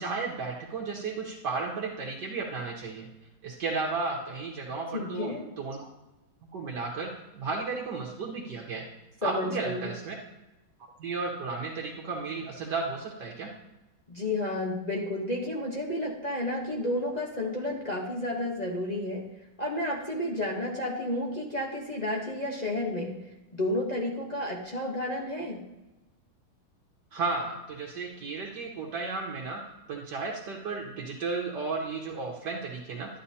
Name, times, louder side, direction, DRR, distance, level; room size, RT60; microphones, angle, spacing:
voice 1, 0.0-3.1 3.4-5.9 6.5-8.8 9.2-10.2 11.0-13.5 27.1-29.6 29.9-33.2, right 4 dB, 70° right, -1 dB, 1.5 m, -34 dB
voice 2, 4.9-5.4 9.2-9.9 14.1-19.2 19.6-23.2 23.5-25.6, left 1 dB, 30° left, -2 dB, 0.9 m, -31 dB
11.5 x 8.8 x 2.8 m, 1.0 s
omnidirectional pair, 2.0 m